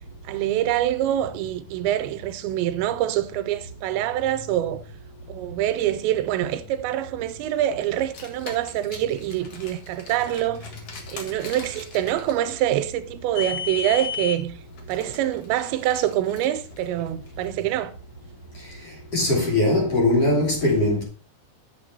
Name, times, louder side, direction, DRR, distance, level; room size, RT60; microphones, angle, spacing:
voice 1, 0.3-4.8 5.3-10.7 11.1-14.6 14.9-17.9, right 12 dB, 85° right, 2.9 m, -25 dB
Car, 7.9-17.5, left 7 dB, 60° left, 1.5 m, -37 dB
voice 2, 19.1-21.0, left 1 dB, 35° left, 3.4 m, -20 dB
8.6 x 7.3 x 4.3 m
omnidirectional pair, 5.2 m